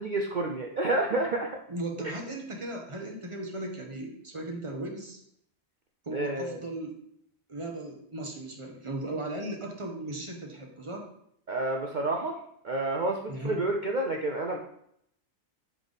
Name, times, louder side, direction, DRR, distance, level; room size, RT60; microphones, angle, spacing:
voice 1, 0.0-1.6 2.0-2.1 6.1-6.6 11.5-12.4 12.6-14.6, right 2 dB, 50° right, 1 dB, 0.6 m, -29 dB
voice 2, 1.7-5.2 6.0-7.0 7.5-11.1 13.3-13.6, right 1 dB, 25° right, 1 dB, 1.1 m, -37 dB
9.0 x 3.6 x 4.0 m, 0.71 s
omnidirectional pair, 1.4 m